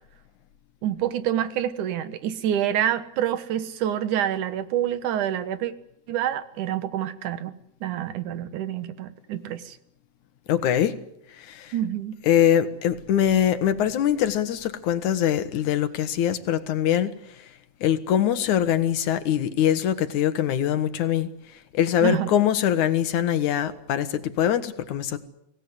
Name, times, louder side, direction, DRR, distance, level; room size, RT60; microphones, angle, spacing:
voice 1, 0.8-5.7 6.1-7.5 7.8-9.8 11.7-12.2 22.0-22.3, right 10 dB, 90° right, 13 dB, 2.8 m, -27 dB
voice 2, 10.5-11.0 11.3-11.8 12.2-17.5 17.8-25.2, left 10 dB, 80° left, 11 dB, 2.8 m, -23 dB
25.0 x 18.0 x 9.7 m, 0.77 s
omnidirectional pair, 3.4 m